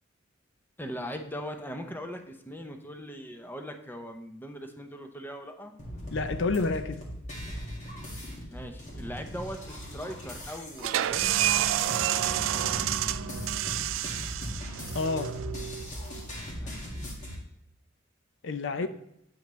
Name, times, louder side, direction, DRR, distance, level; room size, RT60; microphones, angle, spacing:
voice 1, 0.8-5.7 8.5-11.4 16.6-16.8 18.7-18.9, equal, 10° left, 0.7 m, -40 dB
sound 1, 5.8-17.4, equal, 40° left, 1.9 m, -39 dB
voice 2, 6.1-7.0 14.9-15.4 18.4-18.9, left 3 dB, 65° left, 0.5 m, -29 dB
sound 2, 10.8-16.2, right 12 dB, 75° right, 0.3 m, -29 dB
8.6 x 5.8 x 3.1 m
head